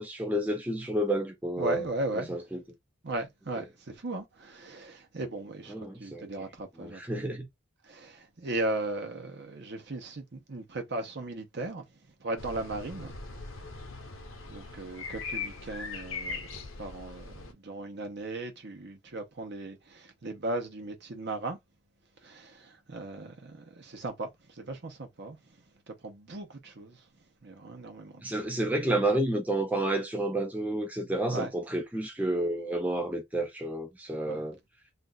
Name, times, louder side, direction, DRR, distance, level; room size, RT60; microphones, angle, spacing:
voice 1, 0.0-1.9 2.2-2.6 5.7-6.2 6.8-7.5 28.2-34.6, right 1 dB, 5° right, 0.5 m, -30 dB
voice 2, 1.6-2.4 3.0-7.4 7.9-11.8 12.2-13.2 14.5-21.6 22.2-24.3 24.6-25.4 25.9-27.0 27.4-28.5 31.3-31.5 34.3-34.5, right 2 dB, 55° right, 0.8 m, -37 dB
sound 1, 12.4-17.5, left 4 dB, 70° left, 0.8 m, -40 dB
2.5 x 2.4 x 3.9 m
head